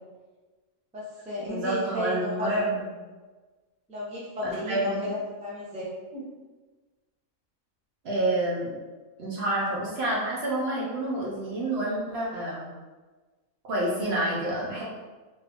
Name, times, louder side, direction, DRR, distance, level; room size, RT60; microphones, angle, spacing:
voice 1, 0.9-2.7 3.9-6.2, equal, 10° right, -6 dB, 0.5 m, -34 dB
voice 2, 1.5-2.7 4.4-5.0 8.0-8.7 9.2-12.7 13.6-14.8, right 1 dB, 55° right, -5 dB, 0.9 m, -28 dB
2.7 x 2.6 x 3.4 m, 1.3 s
omnidirectional pair, 1.4 m